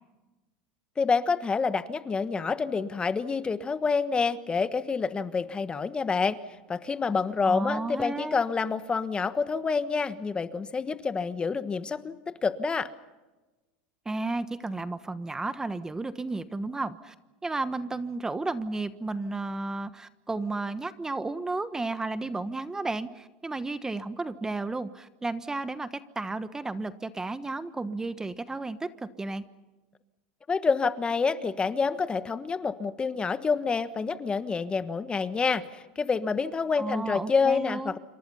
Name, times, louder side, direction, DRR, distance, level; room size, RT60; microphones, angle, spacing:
voice 1, 1.0-6.4 6.7-12.9 30.5-38.0, left 5 dB, 20° left, 13 dB, 1.3 m, -28 dB
voice 2, 7.4-8.4 14.0-17.1 17.4-25.9 26.1-29.4 36.8-38.0, right 3 dB, 10° right, 13 dB, 1.2 m, -33 dB
28.0 x 25.5 x 5.6 m, 1.1 s
supercardioid pair, 110°, 5 cm